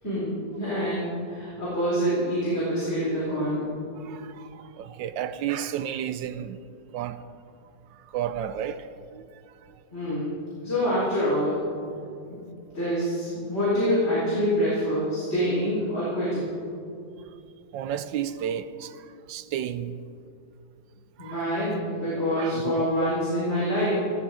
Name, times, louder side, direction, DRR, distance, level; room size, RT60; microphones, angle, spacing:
voice 1, 0.0-3.7 9.9-10.4 10.6-11.6 12.3-12.4 12.7-16.5 21.2-23.9, equal, 30° left, 4.5 m, -26 dB
voice 2, 3.9-6.6 6.9-7.3 7.9-9.8 12.2-12.3 17.3-17.4 17.7-20.0 21.2-21.5 22.4-23.2, right 9 dB, 75° right, 1.2 m, -33 dB
15.5 x 14.0 x 5.0 m
omnidirectional pair, 2.1 m